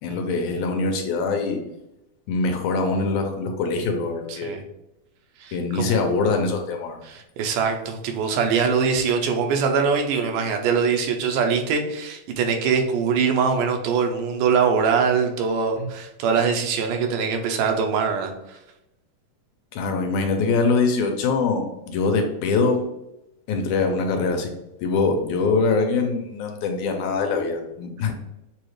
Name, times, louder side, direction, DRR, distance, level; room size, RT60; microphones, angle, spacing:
voice 1, 0.0-1.6 2.3-4.6 5.5-7.1 15.8-15.9 19.7-22.8 23.5-24.5 24.8-28.1, left 4 dB, 80° left, 4 dB, 2.0 m, -23 dB
voice 2, 4.3-4.6 5.4-6.0 7.0-18.6, right 6 dB, 85° right, 4 dB, 2.2 m, -23 dB
6.9 x 2.4 x 3.1 m, 0.89 s
omnidirectional pair, 3.6 m